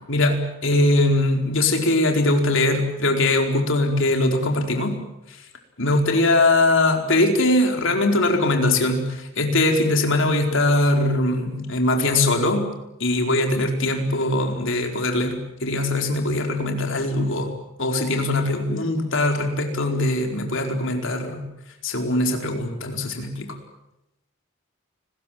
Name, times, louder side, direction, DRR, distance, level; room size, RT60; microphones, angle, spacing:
voice 1, 0.1-5.0 5.8-12.7 13.0-17.5 17.8-21.5 21.8-23.6, left 2 dB, 60° left, 3 dB, 4.6 m, -21 dB
30.0 x 21.0 x 7.6 m, 0.89 s
head